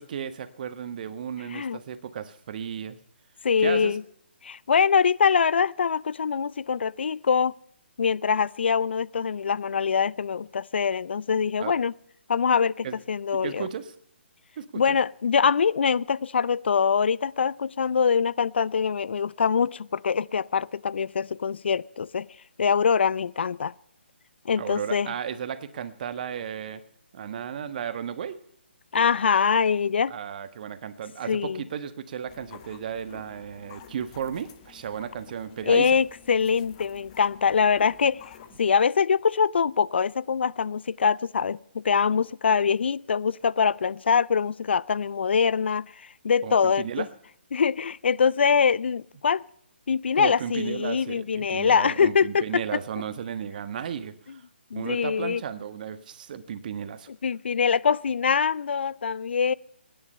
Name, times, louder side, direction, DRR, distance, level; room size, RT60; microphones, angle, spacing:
voice 1, 0.0-3.0 3.6-4.0 11.6-11.7 12.8-13.0 13.4-13.9 14.6-15.0 24.5-26.8 27.1-28.4 30.1-35.9 46.4-47.1 50.1-54.4 54.7-57.1, right 8 dB, 45° right, 1.4 m, -34 dB
voice 2, 3.4-4.0 4.4-7.6 8.0-11.9 12.3-13.7 14.7-22.3 22.6-23.7 24.4-25.1 28.9-30.2 31.3-31.6 35.7-38.2 38.6-47.0 47.5-49.4 49.9-52.8 54.7-55.4 57.2-59.5, left 6 dB, 65° left, 0.5 m, -24 dB
sound 1, 32.3-38.6, left 9 dB, 35° left, 1.4 m, -50 dB
23.5 x 10.5 x 5.6 m
figure-of-eight pair, 145°, 6 cm